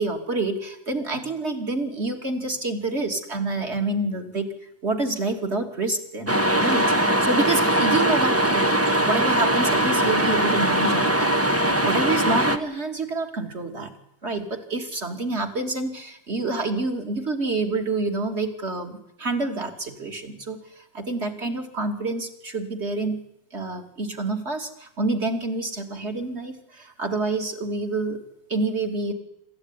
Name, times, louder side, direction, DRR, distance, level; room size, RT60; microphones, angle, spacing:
voice 1, 0.0-4.5 4.8-8.7 9.0-11.3 11.6-13.9 14.2-23.2 23.5-28.2 28.5-29.1, right 3 dB, 30° right, 5 dB, 3.0 m, -27 dB
sound 1, 6.3-12.6, right 1 dB, 10° right, 1.2 m, -21 dB
27.0 x 14.0 x 9.9 m, 0.80 s
omnidirectional pair, 2.3 m